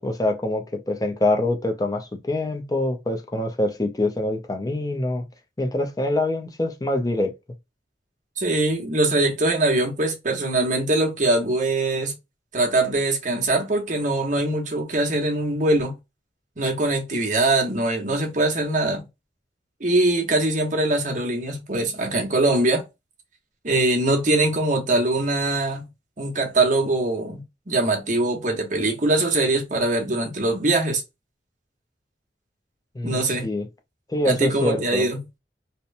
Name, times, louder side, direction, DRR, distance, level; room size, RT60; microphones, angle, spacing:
voice 1, 0.0-5.2 5.6-7.3 32.9-33.7 34.1-35.1, left 1 dB, 20° left, 0.5 m, -25 dB
voice 2, 8.4-12.1 12.5-16.0 16.6-19.0 19.8-22.8 23.6-25.9 26.2-31.0 33.0-33.5 34.2-35.2, right 2 dB, 45° right, 0.9 m, -22 dB
2.9 x 2.1 x 2.5 m
head